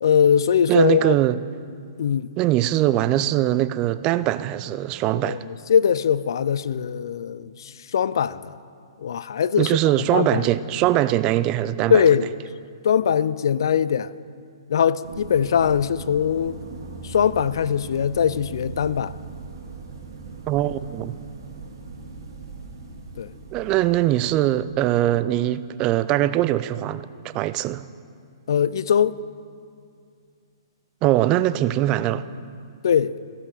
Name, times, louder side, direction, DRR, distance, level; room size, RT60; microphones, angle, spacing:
voice 1, 0.0-1.2 2.0-2.3 5.2-8.6 9.0-9.8 10.1-10.5 11.9-12.3 12.8-14.1 14.7-16.6 17.0-19.1 23.2-23.3 28.5-29.2 32.8-33.2, left 8 dB, 65° left, 0.3 m, -21 dB
voice 2, 0.7-1.4 2.4-5.4 9.6-12.0 20.5-21.1 23.5-27.9 31.0-32.2, right 14 dB, 30° right, 0.3 m, -22 dB
sound 1, 15.0-24.7, right 4 dB, 65° right, 2.0 m, -39 dB
15.0 x 5.6 x 6.6 m
hypercardioid pair, 125°, 2 cm